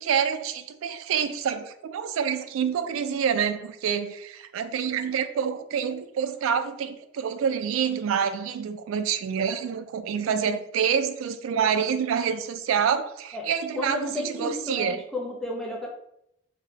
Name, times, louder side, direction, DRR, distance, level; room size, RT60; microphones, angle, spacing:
voice 1, 0.0-15.0, right 7 dB, 85° right, 0.3 m, -27 dB
voice 2, 10.2-10.6 13.3-13.5 13.7-15.9, left 1 dB, ahead, 0.5 m, -33 dB
2.9 x 2.2 x 3.3 m
head